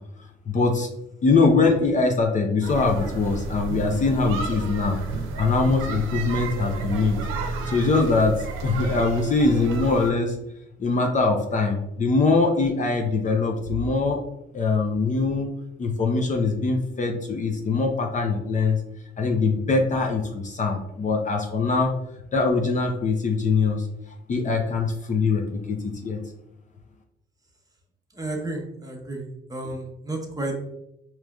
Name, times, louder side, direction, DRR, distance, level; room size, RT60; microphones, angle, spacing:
voice 1, 0.5-0.9 1.2-5.0 5.4-7.2 7.7-8.4 8.6-10.4 10.8-14.2 14.5-15.5 15.8-18.8 19.2-21.9 22.3-23.9 24.3-26.2, left 3 dB, 40° left, 2 dB, 0.6 m, -22 dB
sound 1, 2.6-10.1, right 4 dB, 90° right, 0.6 m, -31 dB
voice 2, 28.2-29.2 29.5-30.5, right 2 dB, 20° right, 0 dB, 0.9 m, -32 dB
4.8 x 3.0 x 2.3 m, 0.83 s
cardioid pair, 90°, 20 cm